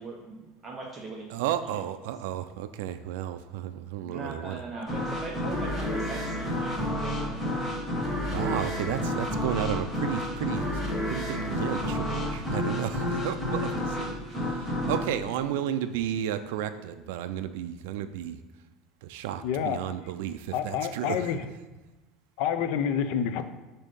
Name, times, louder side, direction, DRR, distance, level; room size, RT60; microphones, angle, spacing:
voice 1, 0.0-1.7 4.0-7.7, right 3 dB, 20° right, -1 dB, 0.5 m, -41 dB
voice 2, 1.3-4.6 8.3-10.8 11.1-18.4 19.0-21.3, right 11 dB, 85° right, 9 dB, 0.3 m, -33 dB
sound 1, 4.9-16.3, left 1 dB, 10° left, 1.0 m, -30 dB
voice 3, 19.4-19.8 20.5-21.5 22.4-23.4, left 8 dB, 55° left, 10 dB, 0.4 m, -28 dB
6.9 x 2.7 x 5.2 m, 1.1 s
cardioid pair, 175°, 0 cm